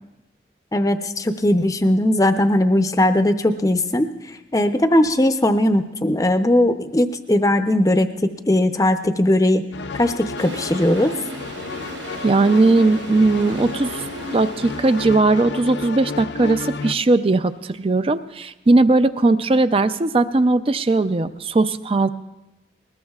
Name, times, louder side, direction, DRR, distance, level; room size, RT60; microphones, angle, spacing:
voice 1, 0.7-4.1 4.5-9.6 9.9-11.1, left 1 dB, 20° left, 8 dB, 0.6 m, -19 dB
sound 1, 9.7-16.9, left 4 dB, 75° left, 0.5 m, -32 dB
Toilet flush, 10.4-15.6, right 2 dB, 85° right, 1.0 m, -36 dB
voice 2, 12.2-14.1 14.3-22.1, right 2 dB, 30° right, 12 dB, 0.4 m, -18 dB
20.5 x 20.0 x 2.4 m, 0.96 s
head